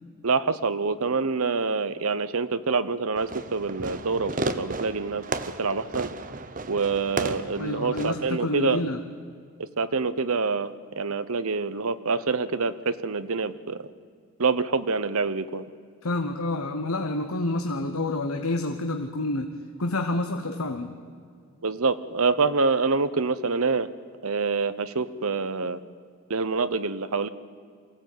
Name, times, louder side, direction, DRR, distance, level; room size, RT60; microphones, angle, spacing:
voice 1, 0.2-5.2 5.6-6.1 6.7-8.8 9.6-13.8 14.4-15.6 21.6-23.9 24.2-25.8 26.3-27.3, right 4 dB, 80° right, 14 dB, 0.9 m, -26 dB
Fireworks, 3.2-8.3, right 3 dB, 35° right, 0.9 m, -34 dB
voice 2, 7.6-9.0 16.0-19.5 19.8-20.9, left 2 dB, 80° left, 6 dB, 1.2 m, -28 dB
23.0 x 16.0 x 9.3 m, 2.2 s
head